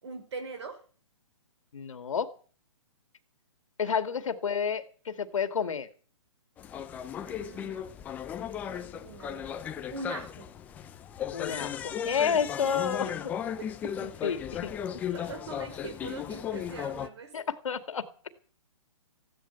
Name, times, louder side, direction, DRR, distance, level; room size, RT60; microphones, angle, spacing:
voice 1, 0.0-0.8 3.8-4.3 7.2-7.9 8.7-9.4 9.9-10.5 13.0-13.2 15.1-17.3, right 3 dB, 55° right, 9 dB, 5.8 m, -42 dB
voice 2, 1.7-2.3 3.8-5.9 11.3-13.1 14.0-14.7 17.3-18.3, left 7 dB, 75° left, 10 dB, 2.2 m, -30 dB
sound 1, 6.6-17.1, left 9 dB, 10° left, 0.6 m, -36 dB
15.5 x 11.5 x 7.1 m, 0.41 s
hypercardioid pair, 160°, 17 cm